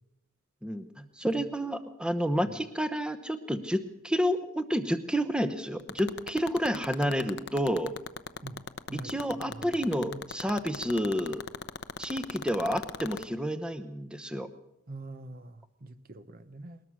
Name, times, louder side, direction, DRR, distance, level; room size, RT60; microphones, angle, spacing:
voice 1, 0.6-7.9 8.9-11.4 12.0-14.5, equal, 5° right, 10 dB, 0.9 m, -30 dB
sound 1, 5.8-13.2, left 5 dB, 55° left, 0.8 m, -35 dB
voice 2, 8.4-10.2 14.9-16.8, right 2 dB, 45° right, 12 dB, 0.9 m, -45 dB
21.0 x 20.0 x 6.3 m, 0.85 s
head